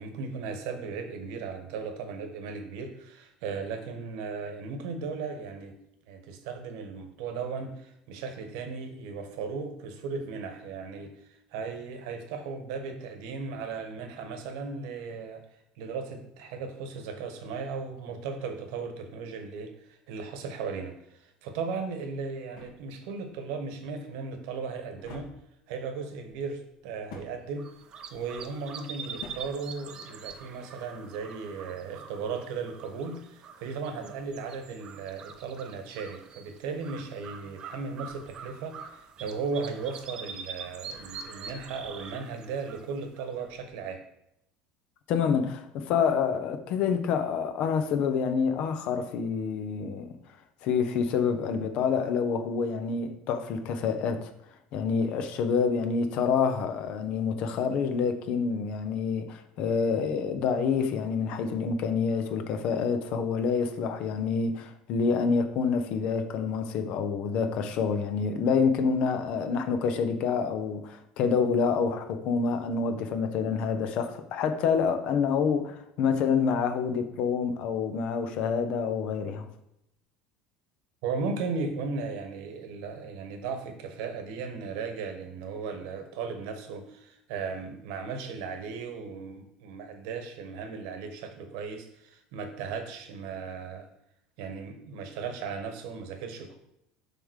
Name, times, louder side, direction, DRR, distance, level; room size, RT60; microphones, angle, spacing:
voice 1, 0.0-5.7 6.1-15.4 15.8-25.3 25.7-27.7 28.1-44.0 81.0-93.9 94.4-96.6, right 5 dB, 75° right, 1.4 m, -36 dB
sound 1, 21.7-30.5, left 4 dB, 75° left, 2.4 m, -52 dB
sound 2, 27.6-43.6, right 6 dB, 30° right, 0.6 m, -45 dB
voice 2, 45.1-50.2 50.6-54.3 54.7-79.5, left 6 dB, 50° left, 0.8 m, -27 dB
6.9 x 3.7 x 6.4 m
cardioid pair, 165°, 2 cm